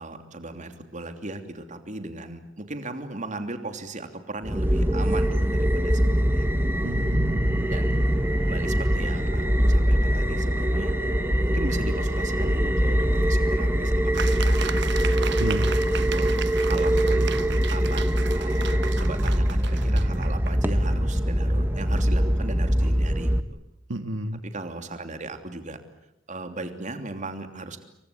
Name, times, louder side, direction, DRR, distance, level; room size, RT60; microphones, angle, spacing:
voice 1, 0.0-6.5 7.6-7.9 8.4-10.9 11.5-16.3 16.7-17.4 17.7-23.6 24.4-25.8 26.3-27.8, right 2 dB, 40° right, 7 dB, 3.1 m, -37 dB
sound 1, 4.4-23.4, equal, 10° right, 1.5 m, -23 dB
voice 2, 6.8-8.0 15.4-15.7 23.9-24.4, right 1 dB, 85° right, 8 dB, 1.7 m, -31 dB
sound 2, 7.1-16.5, left 2 dB, 60° left, 6.7 m, -45 dB
sound 3, 14.1-20.6, right 8 dB, 65° right, 1.2 m, -36 dB
29.0 x 24.0 x 8.6 m, 0.82 s
head